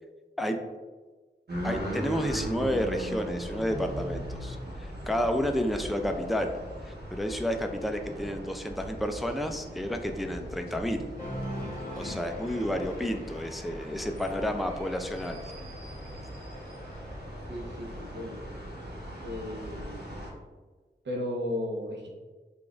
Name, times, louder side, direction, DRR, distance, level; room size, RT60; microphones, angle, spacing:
sound 1, 1.5-20.3, equal, 65° right, 1.1 m, -39 dB
voice 1, 1.6-6.5 6.9-11.0 12.0-15.4, equal, ahead, 5 dB, 0.4 m, -31 dB
Cheering, 11.2-18.2, equal, 50° left, 1.2 m, -43 dB
voice 2, 17.5-18.5 19.2-20.2 21.0-22.1, left 1 dB, 80° right, -1 dB, 0.8 m, -35 dB
5.0 x 2.4 x 2.4 m, 1.3 s
cardioid pair, 40°, 18 cm